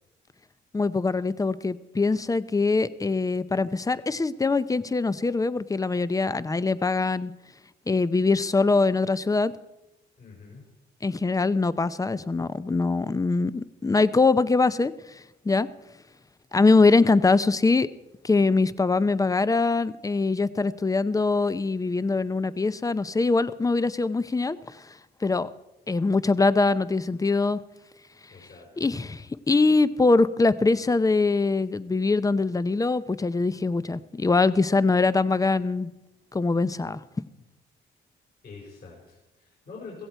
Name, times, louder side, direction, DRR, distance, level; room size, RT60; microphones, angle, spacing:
voice 1, 0.7-7.3 7.9-9.5 11.0-14.9 15.4-15.7 16.5-17.9 18.2-24.9 25.2-25.5 25.9-27.6 28.8-35.9 36.3-37.0, left 3 dB, 15° left, 15 dB, 0.6 m, -23 dB
voice 2, 10.2-10.6 28.3-28.7 28.9-29.1 38.4-40.1, left 4 dB, 50° left, -4 dB, 4.7 m, -45 dB
16.5 x 15.0 x 4.5 m, 0.97 s
cardioid pair, 90°, 20 cm